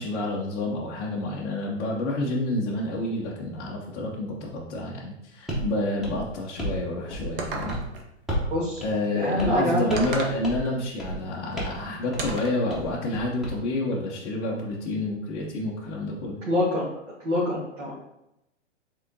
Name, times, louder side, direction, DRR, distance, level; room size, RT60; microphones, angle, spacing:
voice 1, 0.0-7.8 8.8-16.4, left 2 dB, 15° left, -5 dB, 0.4 m, -29 dB
sound 1, 5.5-5.7 6.0-6.8 7.1-7.4 7.7-7.9 8.3-8.5 8.8-8.9 9.4-9.6 9.9-10.2 10.4-10.7 11.0-11.2 11.6-11.8 12.1-12.3 12.7-13.6, right 1 dB, ahead, 0.8 m, -32 dB
sound 2, 7.4-8.1 10.0-10.4 12.2-12.6, right 3 dB, 50° right, 0.9 m, -33 dB
voice 2, 8.5-8.8 9.1-10.0 16.5-16.9 17.2-18.0, left 1 dB, 85° right, -6 dB, 1.6 m, -25 dB
4.7 x 3.6 x 2.7 m, 0.85 s
hypercardioid pair, 135°, 36 cm